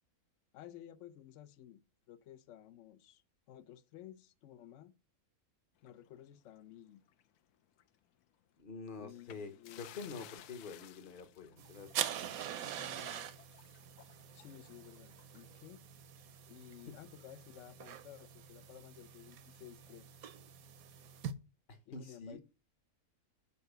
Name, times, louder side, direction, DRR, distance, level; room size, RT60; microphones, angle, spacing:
voice 1, 0.5-1.8 2.1-3.2 3.5-4.9 5.8-7.0 9.0-10.0 12.7-13.3 14.3-15.8 16.5-20.1 21.9-22.4, left 11 dB, 65° left, 0.9 m, -54 dB
sound 1, 5.8-7.4 7.7-7.9 9.2-15.7, left 12 dB, 90° left, 1.1 m, -58 dB
voice 2, 8.6-11.9 21.7-22.4, left 4 dB, 40° left, 1.0 m, -47 dB
sound 2, 11.6-21.3, right 9 dB, 70° right, 1.2 m, -44 dB
7.0 x 5.5 x 6.6 m
omnidirectional pair, 1.6 m